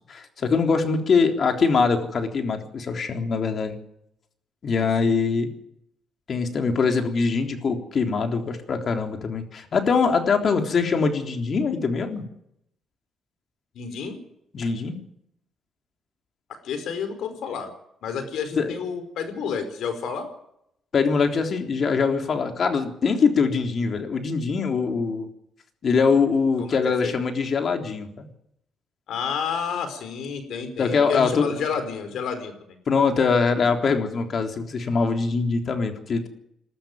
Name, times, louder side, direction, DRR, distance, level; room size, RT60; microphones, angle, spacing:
voice 1, 0.0-3.8 4.6-5.5 6.3-12.2 14.5-15.0 18.6-18.7 20.9-25.3 25.8-28.3 30.8-31.6 32.9-36.3, left 5 dB, 50° left, 5 dB, 3.6 m, -23 dB
voice 2, 13.7-14.2 14.6-14.7 16.6-17.7 18.0-20.3 26.6-27.1 29.1-32.5, left 6 dB, 75° left, 9 dB, 4.8 m, -30 dB
21.0 x 13.0 x 9.4 m, 0.76 s
cardioid pair, 90°, 0 cm